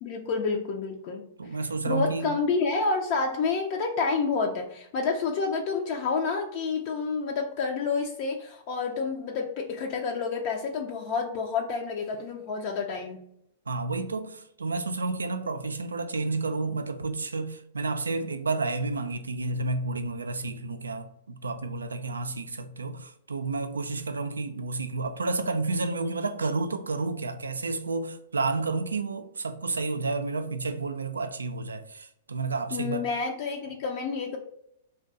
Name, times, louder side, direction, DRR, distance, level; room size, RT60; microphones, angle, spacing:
voice 1, 0.0-1.3 1.9-13.2 32.7-34.4, left 4 dB, 50° left, 0.4 m, -29 dB
voice 2, 1.4-2.3 13.7-33.1, right 3 dB, 85° right, 0.3 m, -31 dB
2.6 x 2.2 x 3.8 m
hypercardioid pair, 110°, 0 cm